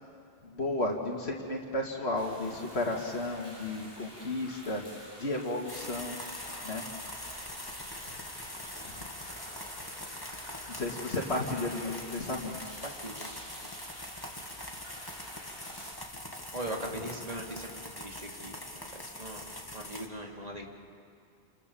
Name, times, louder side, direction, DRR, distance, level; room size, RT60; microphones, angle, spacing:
voice 1, 0.4-6.2 6.6-6.8 10.7-12.7, left 2 dB, 90° left, 0 dB, 2.6 m, -33 dB
sound 1, 2.1-15.9, equal, 70° right, 7.9 m, -49 dB
sound 2, 5.7-20.1, left 1 dB, 20° left, 2.3 m, -43 dB
voice 2, 10.5-10.9 12.8-13.3 13.6-13.7 16.5-20.7, right 1 dB, 40° right, 0 dB, 2.9 m, -41 dB
29.0 x 27.5 x 7.1 m, 2.4 s
omnidirectional pair, 1.1 m